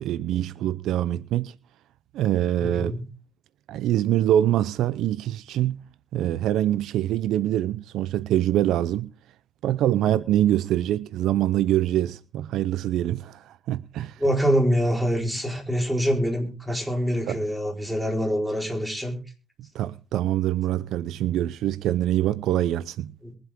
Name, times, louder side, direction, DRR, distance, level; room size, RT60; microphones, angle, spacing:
voice 1, 0.0-1.5 2.1-2.9 3.7-5.8 6.1-9.1 9.6-14.2 17.3-17.4 19.7-23.1, right 12 dB, 85° right, 0.5 m, -24 dB
voice 2, 2.6-3.0 14.2-19.2 23.2-23.4, equal, 5° right, 4.6 m, -25 dB
22.5 x 8.0 x 3.7 m
cardioid pair, 90°, 0 cm